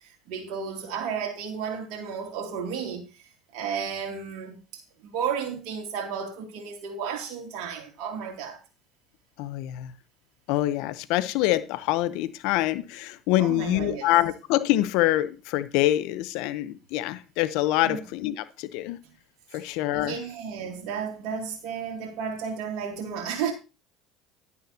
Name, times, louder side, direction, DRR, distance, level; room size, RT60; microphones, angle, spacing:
voice 1, 0.3-3.1 3.5-8.6 13.4-14.1 17.8-18.0 19.5-19.6 19.9-23.5, right 7 dB, 65° right, 2.6 m, -33 dB
voice 2, 9.4-9.9 10.5-19.0 19.5-20.2, left 15 dB, 70° left, 0.8 m, -25 dB
11.0 x 9.5 x 2.8 m
hypercardioid pair, 75°, 0 cm